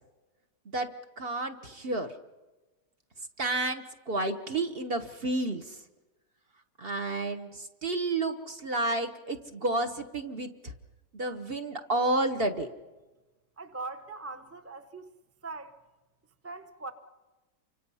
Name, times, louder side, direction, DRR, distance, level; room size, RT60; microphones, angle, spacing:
voice 1, 1.2-2.1 3.4-5.6 6.8-10.7 11.1-12.7, right 2 dB, 40° right, 1.1 m, -31 dB
voice 2, 13.6-15.1 15.4-15.8 16.4-16.9, right 3 dB, 10° right, 0.7 m, -41 dB
29.0 x 25.0 x 5.6 m
omnidirectional pair, 1.8 m